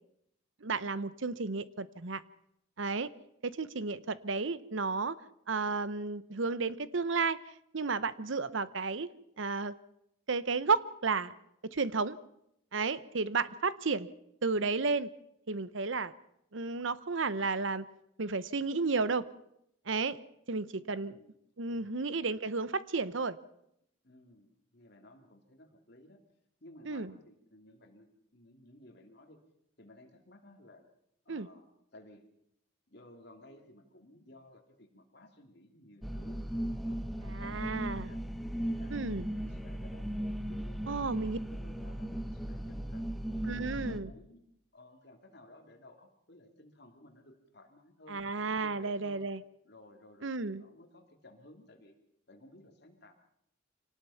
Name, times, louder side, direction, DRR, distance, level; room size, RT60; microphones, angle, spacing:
voice 1, 0.6-2.2 2.8-3.1 3.4-5.2 5.5-7.4 7.7-9.1 9.4-9.8 10.3-11.3 11.6-12.2 12.7-14.1 14.4-15.1 15.5-16.1 16.5-17.9 18.2-19.3 19.9-20.2 20.5-21.2 21.6-23.4 26.9-27.1 31.3-31.5 37.2-38.1 38.9-39.3 40.9-41.4 43.5-44.1 48.1-49.4 50.2-50.6, right 4 dB, 70° right, 16 dB, 0.8 m, -32 dB
voice 2, 20.8-21.4 21.7-22.3 24.0-26.2 26.6-29.4 29.8-30.8 31.2-32.2 32.9-36.4 36.8-38.2 38.5-40.1 40.5-43.0 43.4-44.4 44.7-48.2 48.6-49.3 49.6-51.9 52.3-53.1, left 1 dB, 55° left, 4 dB, 2.8 m, -57 dB
sound 1, 36.0-44.0, equal, ahead, 1.1 m, -37 dB
26.0 x 18.5 x 5.8 m, 0.77 s
head